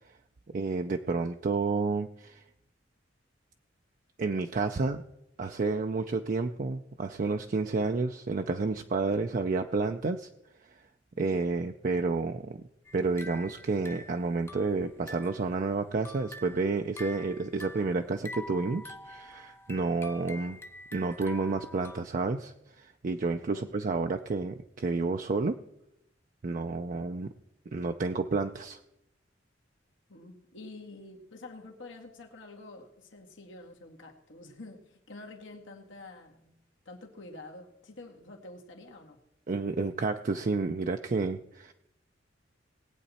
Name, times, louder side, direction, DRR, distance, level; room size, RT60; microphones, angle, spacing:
voice 1, 0.5-2.4 4.2-5.0 5.4-10.3 11.2-12.6 12.9-20.6 20.9-25.6 26.4-27.3 27.7-28.8 39.5-41.7, right 3 dB, 45° right, 6 dB, 0.5 m, -30 dB
sound 1, 12.9-15.5 15.9-22.0, left 1 dB, 15° left, 0.5 m, -46 dB
voice 2, 30.1-36.6 36.9-39.2, left 2 dB, 90° left, 1 dB, 2.0 m, -48 dB
20.0 x 8.5 x 4.2 m, 0.83 s
head